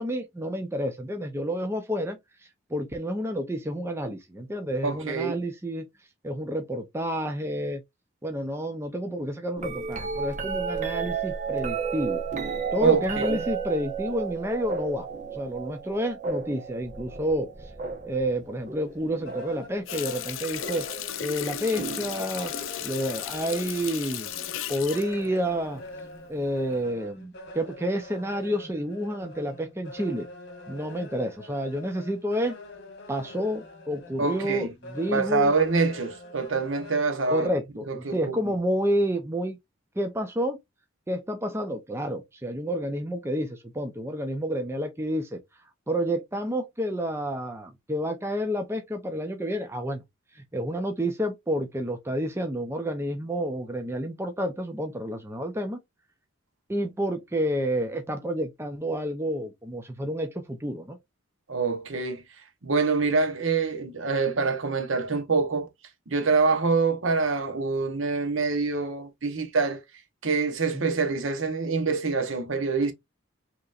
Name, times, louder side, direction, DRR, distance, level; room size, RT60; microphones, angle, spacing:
voice 1, 0.0-2.2 2.7-5.9 6.2-7.8 8.2-12.2 12.7-15.1 15.3-17.5 18.0-20.9 21.2-22.5 22.8-25.8 26.3-30.3 30.7-32.6 33.1-35.5 37.3-39.6 40.0-40.6 41.1-45.4 45.9-50.0 50.3-55.8 56.7-61.0 70.7-70.9, equal, 15° right, 0.6 m, -29 dB
voice 2, 4.8-5.4 12.8-13.4 34.2-34.7 35.1-37.5 37.9-38.5 61.5-62.2 62.6-65.7 66.1-69.8 70.2-72.9, right 4 dB, 70° right, 0.9 m, -25 dB
sound 1, 9.6-19.7 20.6-21.0 21.8-22.8 24.6-24.7, right 5 dB, 35° right, 1.0 m, -33 dB
sound 2, 18.6-18.8 19.1-37.5, left 2 dB, 55° left, 1.4 m, -44 dB
Water tap faucet, 19.9-26.2 26.6-26.8, left 10 dB, 70° left, 0.5 m, -36 dB
5.3 x 3.0 x 2.4 m
head